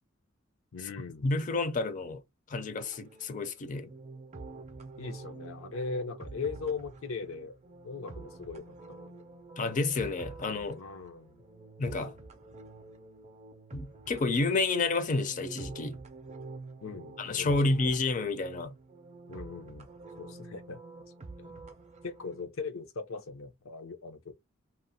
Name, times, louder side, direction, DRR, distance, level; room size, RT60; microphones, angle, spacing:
voice 1, 0.7-1.3 5.0-7.6 7.8-9.2 10.8-11.4 16.8-17.7 19.3-19.9 20.2-20.8 21.4-21.6 22.0-24.3, left 4 dB, 90° left, 0.6 m, -39 dB
voice 2, 1.2-2.2 2.5-3.9 9.6-10.8 11.8-12.1 13.7-16.0 17.2-18.8, left 3 dB, 40° left, 0.4 m, -30 dB
sound 1, 2.8-22.5, right 3 dB, 35° right, 0.4 m, -47 dB
2.8 x 2.0 x 2.6 m
head